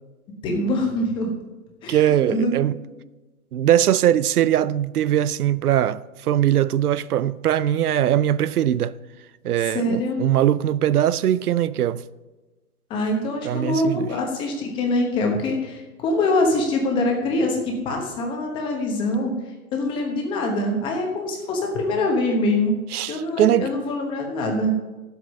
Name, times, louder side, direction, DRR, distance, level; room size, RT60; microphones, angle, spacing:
voice 1, 0.4-1.3 1.8-2.5 2.9-3.0 9.6-10.2 12.9-19.3 19.7-22.8 23.1-24.7, left 2 dB, 10° left, 1.0 m, -24 dB
voice 2, 1.9-2.8 3.5-9.0 9.4-12.0 13.4-14.1 22.9-23.7, right 11 dB, 85° right, 0.6 m, -21 dB
11.0 x 8.0 x 5.2 m
hypercardioid pair, 160°, 44 cm